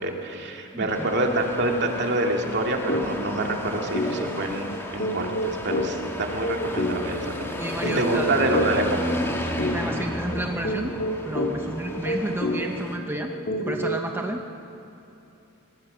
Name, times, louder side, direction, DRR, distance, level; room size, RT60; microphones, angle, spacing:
voice 1, 0.0-7.6 7.9-8.9, right 1 dB, 55° right, 2 dB, 2.4 m, -26 dB
voice 2, 0.7-1.1 7.6-8.3 9.6-11.0 11.2-13.3 13.6-14.4, right 1 dB, 10° right, 3 dB, 0.8 m, -31 dB
sound 1, 0.9-13.0, equal, 10° left, 1.9 m, -34 dB
sound 2, 2.9-3.1 3.4-3.6 3.9-14.2, left 1 dB, 45° left, 2.2 m, -29 dB
23.5 x 19.0 x 6.6 m, 2.9 s
head